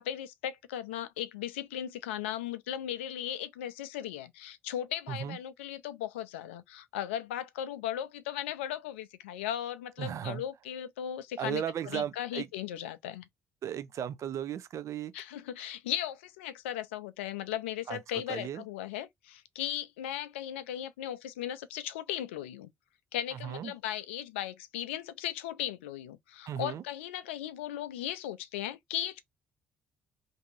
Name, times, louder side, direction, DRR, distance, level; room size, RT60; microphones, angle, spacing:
voice 1, 0.0-11.6 11.9-13.3 15.1-22.7 23.1-29.2, left 11 dB, 80° left, 0.4 m, -37 dB
voice 2, 5.1-5.4 10.0-10.4 11.4-12.5 13.6-15.1 17.9-18.6 23.3-23.7 26.5-26.8, right 10 dB, 55° right, 0.5 m, -36 dB
2.7 x 2.6 x 3.8 m
hypercardioid pair, 45°, 6 cm